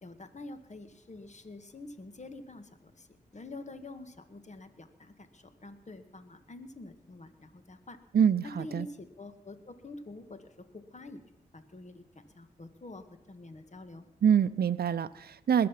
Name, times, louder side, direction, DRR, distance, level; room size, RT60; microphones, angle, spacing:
voice 1, 0.0-3.1 3.3-8.0 8.4-11.2 11.5-14.0, left 2 dB, 40° left, 10 dB, 1.6 m, -47 dB
voice 2, 8.1-8.9 14.2-15.7, right 8 dB, 65° right, 12 dB, 0.6 m, -25 dB
20.5 x 7.7 x 5.8 m, 0.87 s
cardioid pair, 45°, 18 cm